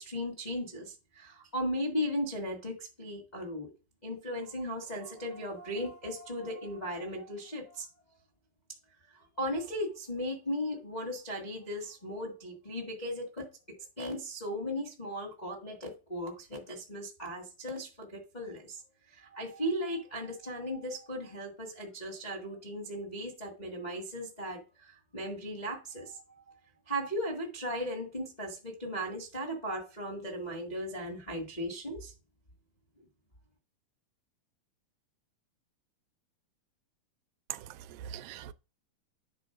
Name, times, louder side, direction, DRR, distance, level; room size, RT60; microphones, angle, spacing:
voice 1, 0.0-3.7 4.0-7.9 9.4-13.5 14.0-18.8 19.1-26.2 26.9-32.1, equal, 35° left, 0.6 m, -37 dB
voice 2, 37.5-38.5, right 11 dB, 85° right, 2.3 m, -42 dB
9.7 x 3.9 x 5.9 m
omnidirectional pair, 3.9 m